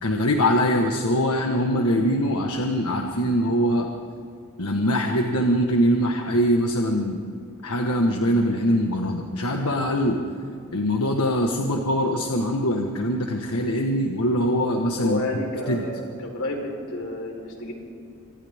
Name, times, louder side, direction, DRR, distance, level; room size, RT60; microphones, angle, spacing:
voice 1, 0.0-3.9 4.6-7.2 7.6-10.2 10.7-15.2 15.7-15.9, equal, 85° left, 2 dB, 1.5 m, -22 dB
voice 2, 15.0-17.7, left 1 dB, 65° left, 1 dB, 4.3 m, -30 dB
27.5 x 26.0 x 3.7 m, 2.5 s
head